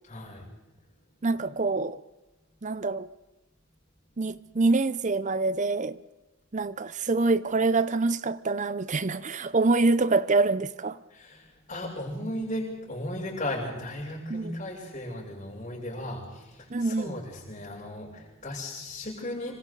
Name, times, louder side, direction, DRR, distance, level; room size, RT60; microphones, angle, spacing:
voice 1, 0.0-0.4 11.1-19.6, left 1 dB, 35° left, 6.9 m, -36 dB
voice 2, 1.2-2.0 2.6-3.1 4.2-6.0 6.5-11.0 14.3-14.6 16.7-17.1, right 3 dB, 35° right, 0.6 m, -25 dB
26.0 x 25.5 x 4.0 m
head